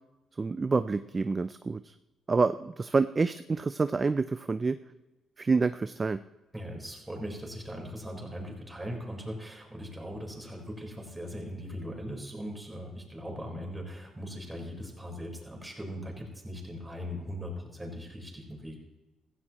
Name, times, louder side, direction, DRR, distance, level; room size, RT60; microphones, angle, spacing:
voice 1, 0.4-1.9 2.3-4.8 5.4-6.2, right 4 dB, 30° right, 12 dB, 0.4 m, -27 dB
voice 2, 6.5-18.8, equal, 10° right, 0 dB, 4.4 m, -39 dB
16.0 x 15.5 x 3.0 m, 1.1 s
cardioid pair, 90°, 0 cm